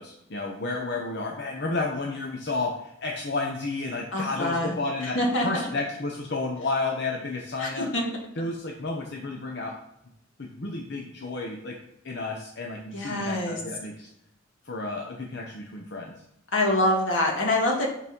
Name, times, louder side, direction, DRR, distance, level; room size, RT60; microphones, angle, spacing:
voice 1, 0.0-5.2 5.4-7.9 8.4-9.7 10.4-11.8 12.0-14.1 14.6-16.1, left 3 dB, 60° left, 0 dB, 0.9 m, -31 dB
voice 2, 4.1-4.7 5.1-5.7 7.6-8.1 12.9-13.6 16.5-17.9, left 1 dB, 80° left, 0 dB, 2.0 m, -25 dB
8.3 x 4.1 x 5.4 m, 0.80 s
head